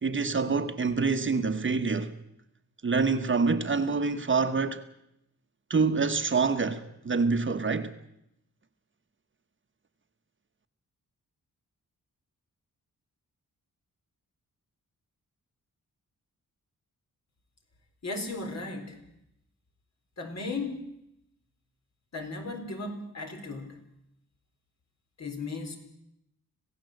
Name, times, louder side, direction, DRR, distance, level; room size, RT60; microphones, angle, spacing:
voice 1, 0.0-2.1 2.8-4.8 5.7-7.9, right 4 dB, 35° right, 1.2 m, -26 dB
voice 2, 18.0-19.0 20.2-20.8 22.1-23.8 25.2-25.8, left 3 dB, 55° left, 4.1 m, -36 dB
26.0 x 16.5 x 7.9 m
wide cardioid pair, 165°, 33 cm